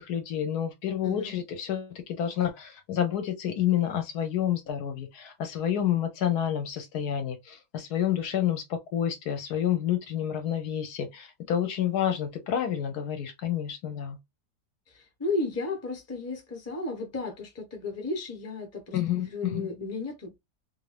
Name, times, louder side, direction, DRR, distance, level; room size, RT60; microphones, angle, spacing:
voice 1, 0.0-14.2 18.9-19.7, left 10 dB, 75° left, 1.1 m, -29 dB
voice 2, 1.0-1.3 14.9-20.4, left 3 dB, 15° left, 0.6 m, -34 dB
2.8 x 2.6 x 3.2 m
omnidirectional pair, 1.8 m